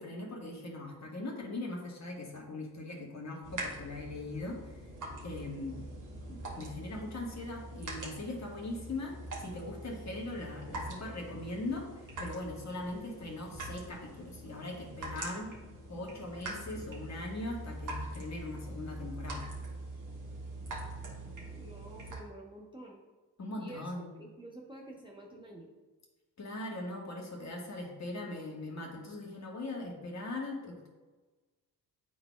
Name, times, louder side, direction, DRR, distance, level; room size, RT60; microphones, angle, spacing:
voice 1, 0.0-4.7 5.2-5.8 6.3-15.6 15.9-19.5 23.4-24.1 26.4-30.9, left 2 dB, 35° left, 0 dB, 1.6 m, -40 dB
sound 1, 3.4-22.1, right 1 dB, 40° right, 1.7 m, -43 dB
voice 2, 21.5-23.0 23.5-25.7, right 1 dB, 10° right, -2 dB, 1.0 m, -49 dB
10.5 x 4.0 x 2.3 m, 1.2 s
figure-of-eight pair, 40°, 49 cm